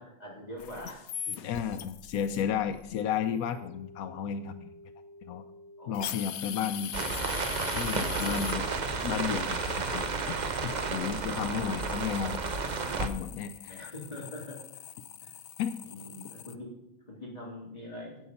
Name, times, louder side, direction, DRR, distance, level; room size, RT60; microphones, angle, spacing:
voice 1, 0.0-1.4 5.8-6.3 11.4-11.5 13.6-14.6 15.2-15.3 15.8-18.3, left 1 dB, 25° left, -3 dB, 3.6 m, -44 dB
sound 1, 0.6-16.5, left 9 dB, 60° left, 0.8 m, -43 dB
voice 2, 1.4-4.7 5.2-5.4 5.9-6.9 7.7-8.7 9.0-10.4 10.6-12.4 12.9-13.8 15.6-15.7, left 8 dB, 85° left, 10 dB, 1.1 m, -33 dB
sound 2, 6.9-13.1, right 4 dB, 40° right, 0.7 m, -32 dB
11.0 x 8.0 x 5.5 m, 0.82 s
omnidirectional pair, 1.5 m